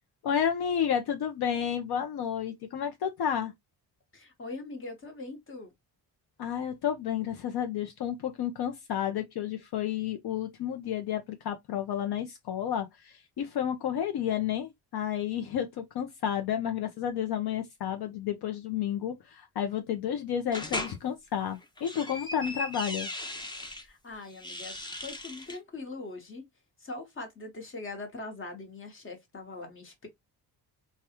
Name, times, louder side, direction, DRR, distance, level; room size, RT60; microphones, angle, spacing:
voice 1, 0.2-3.5 6.4-23.1, left 9 dB, 65° left, 0.6 m, -31 dB
voice 2, 4.1-5.7 23.7-26.5 26.8-30.1, left 3 dB, 30° left, 1.1 m, -42 dB
sound 1, 20.5-21.0 21.6-23.8 24.3-25.6, left 1 dB, 10° left, 0.5 m, -37 dB
3.4 x 2.3 x 2.8 m
cardioid pair, 135°, 41 cm